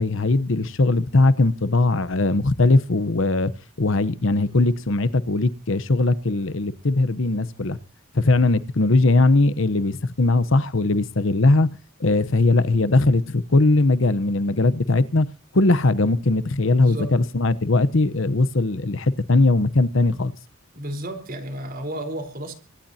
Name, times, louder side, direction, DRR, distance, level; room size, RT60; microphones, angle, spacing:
voice 1, 0.0-3.5 3.8-7.8 8.1-11.7 12.0-15.3 15.5-20.3, left 2 dB, 65° left, 0.9 m, -20 dB
voice 2, 16.7-17.2 20.7-22.5, right 1 dB, 40° right, 4.1 m, -32 dB
25.0 x 11.5 x 2.8 m
head